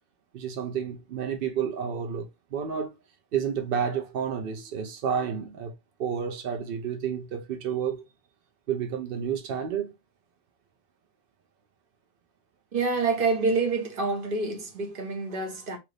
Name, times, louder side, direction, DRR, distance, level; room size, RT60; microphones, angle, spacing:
voice 1, 0.3-2.9 3.3-5.7 6.0-8.0 8.7-9.9, right 7 dB, 80° right, 0.5 m, -30 dB
voice 2, 12.7-15.8, right 3 dB, 45° right, 0.9 m, -27 dB
3.0 x 2.6 x 3.1 m
omnidirectional pair, 1.6 m